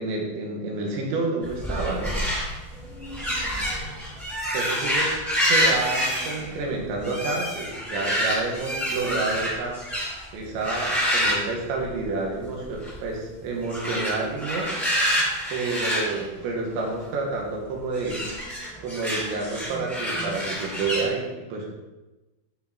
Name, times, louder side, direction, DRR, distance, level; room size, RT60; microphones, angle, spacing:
voice 1, 0.0-2.2 4.5-9.8 10.3-14.7 15.5-18.2 18.8-21.7, right 3 dB, 75° right, -1 dB, 4.0 m, -29 dB
sound 1, 1.4-10.2 10.6-12.3 12.6-13.0 13.6-17.0 17.9-21.0, equal, ahead, 2.9 m, -27 dB
13.5 x 5.7 x 4.4 m, 1.1 s
omnidirectional pair, 5.4 m